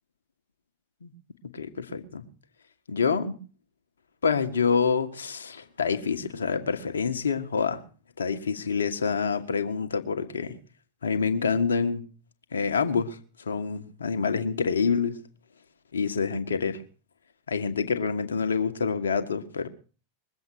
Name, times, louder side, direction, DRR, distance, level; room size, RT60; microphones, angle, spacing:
voice 1, 1.5-2.2 2.9-3.3 4.2-7.8 8.2-10.6 11.0-12.0 12.5-13.2 13.4-15.2 15.9-16.8 17.5-19.7, left 5 dB, 80° left, 1.5 m, -27 dB
22.0 x 7.9 x 6.5 m
hypercardioid pair, 90°, 0 cm